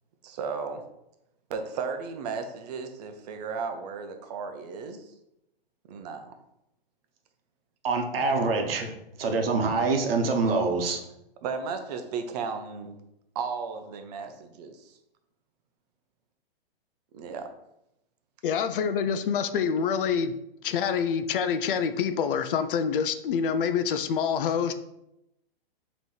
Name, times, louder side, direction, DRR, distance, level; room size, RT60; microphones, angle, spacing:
voice 1, 0.2-0.8 1.5-5.1 5.9-6.3 11.4-12.9 13.3-15.0 17.1-17.5, right 5 dB, 45° right, 7 dB, 0.6 m, -35 dB
voice 2, 7.8-8.9 9.2-11.0, right 3 dB, 70° right, 4 dB, 0.9 m, -25 dB
voice 3, 18.4-20.3 20.6-24.7, left 7 dB, 60° left, 10 dB, 0.5 m, -26 dB
5.2 x 3.0 x 3.2 m, 0.85 s
hypercardioid pair, 140°, 30 cm